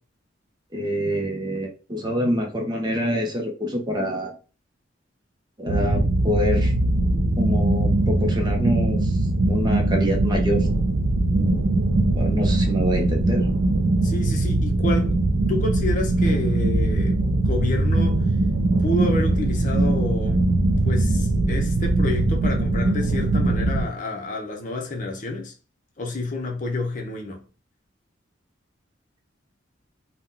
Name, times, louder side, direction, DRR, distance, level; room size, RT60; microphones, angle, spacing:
voice 1, 0.7-4.3 5.6-6.7 7.4-9.2 9.5-10.7 11.3-11.6 12.1-13.5, equal, 20° right, 0.6 m, -26 dB
sound 1, 5.7-23.8, right 2 dB, 75° right, 0.5 m, -21 dB
voice 2, 14.0-15.1 15.5-18.2 18.8-20.5 20.9-25.5 26.0-27.4, left 2 dB, 40° left, 0.7 m, -29 dB
2.7 x 2.2 x 3.6 m
head